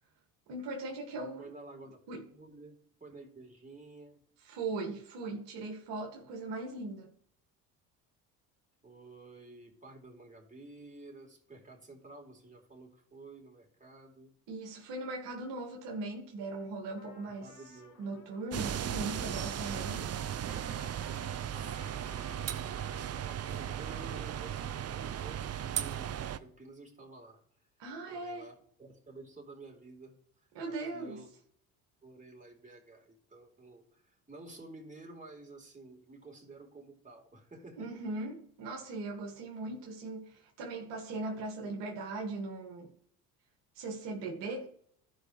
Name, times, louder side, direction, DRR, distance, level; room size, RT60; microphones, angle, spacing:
voice 1, 0.5-1.5 2.1-2.3 4.5-7.1 14.5-17.5 18.0-20.1 27.8-28.5 30.6-31.2 37.8-42.9 43.8-44.7, right 2 dB, 65° right, 2.0 m, -39 dB
voice 2, 1.4-2.0 2.3-2.7 3.0-4.2 8.8-14.3 17.4-18.3 21.6-27.4 28.1-30.1 30.6-31.3 32.0-37.9, right 3 dB, 15° right, 3.6 m, -52 dB
Trumpet, 17.0-25.5, left 6 dB, 70° left, 1.9 m, -57 dB
sound 1, 18.5-26.4, right 9 dB, 35° right, 0.6 m, -36 dB
15.0 x 5.3 x 3.2 m
hypercardioid pair, 60°, 46 cm